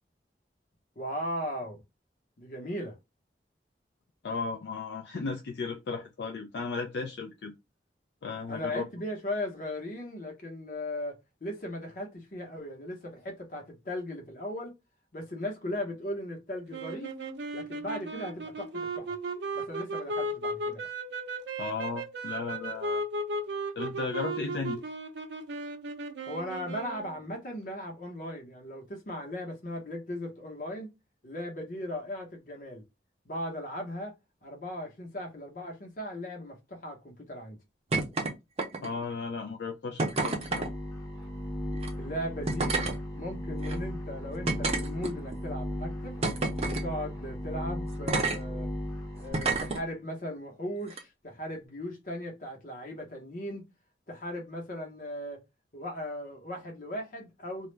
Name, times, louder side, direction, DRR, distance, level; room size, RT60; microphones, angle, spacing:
voice 1, 1.0-1.8 2.4-3.0 8.5-14.7 15.1-17.2 17.5-19.1 19.5-20.9 26.3-30.9 31.2-32.8 33.2-34.1 34.4-37.6 42.0-42.8 43.1-46.2 46.7-48.7 49.2-53.6 54.1-55.4 55.7-57.7, left 1 dB, 50° left, 0.8 m, -37 dB
voice 2, 4.2-7.5 8.2-8.8 21.6-23.0 23.8-24.8 38.8-40.7, left 4 dB, 70° left, 0.4 m, -35 dB
sound 1, 16.7-27.2, right 2 dB, 80° right, 0.5 m, -36 dB
sound 2, 37.9-38.3 38.6-39.0 40.0-40.7 41.7-41.9 42.5-43.0 43.6-43.7 44.5-45.3 46.2-46.8 48.1-48.4 49.3-49.8 50.9-51.0, right 3 dB, 35° right, 0.5 m, -29 dB
sound 3, 40.2-49.9, equal, 20° left, 0.6 m, -36 dB
2.3 x 2.1 x 3.1 m
head